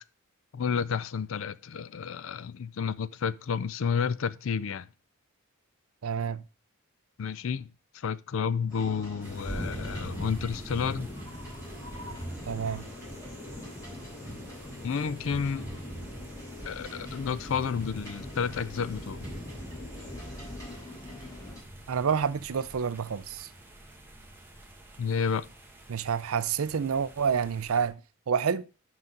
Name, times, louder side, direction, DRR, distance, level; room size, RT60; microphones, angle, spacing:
voice 1, 0.5-4.9 7.2-11.1 14.8-15.7 16.6-19.3 25.0-25.5, left 6 dB, 60° left, 0.4 m, -31 dB
voice 2, 6.0-6.4 12.5-12.9 21.9-23.5 25.9-28.0 28.3-28.7, right 6 dB, 70° right, 0.5 m, -28 dB
sound 1, 8.7-21.6, left 1 dB, 15° left, 3.4 m, -44 dB
sound 2, 9.2-27.9, equal, 10° right, 1.1 m, -43 dB
6.0 x 5.6 x 5.1 m
head